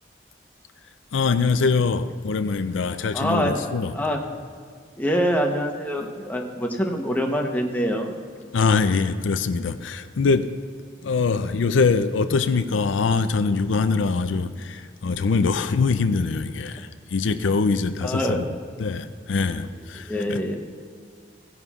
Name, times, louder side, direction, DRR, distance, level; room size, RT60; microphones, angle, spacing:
voice 1, 1.1-4.0 8.5-10.5 11.0-18.4 18.8-20.4, left 4 dB, 80° left, 10 dB, 0.5 m, -23 dB
voice 2, 3.1-4.2 5.0-8.1 18.0-18.4 19.9-20.6, equal, 10° left, 1 dB, 0.9 m, -25 dB
16.0 x 11.0 x 2.4 m, 2.1 s
head